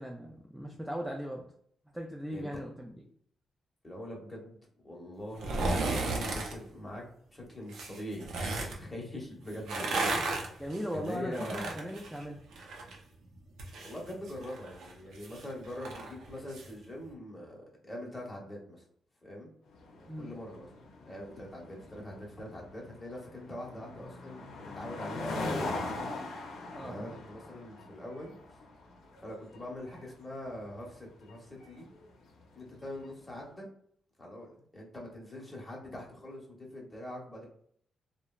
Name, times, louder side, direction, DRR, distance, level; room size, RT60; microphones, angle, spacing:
voice 1, 0.0-1.5 1.9-2.9 10.6-12.4 20.1-20.3 26.7-27.1, equal, 5° right, -1 dB, 0.3 m, -38 dB
voice 2, 3.8-4.6 4.8-7.0 7.3-10.6 10.9-11.9 13.8-18.8 19.2-19.5 20.2-20.7 21.0-26.4 26.8-28.3 29.2-31.9 32.5-33.7 34.2-37.5, left 1 dB, 15° left, -2 dB, 0.9 m, -43 dB
sound 1, 5.3-6.5 7.7-8.8 9.5-13.0 13.3-16.7 17.0-17.1, right 2 dB, 85° right, 0.5 m, -34 dB
sound 2, 19.7-33.2, left 2 dB, 90° left, 0.5 m, -42 dB
3.0 x 2.0 x 2.3 m, 0.62 s
cardioid pair, 110°, 0 cm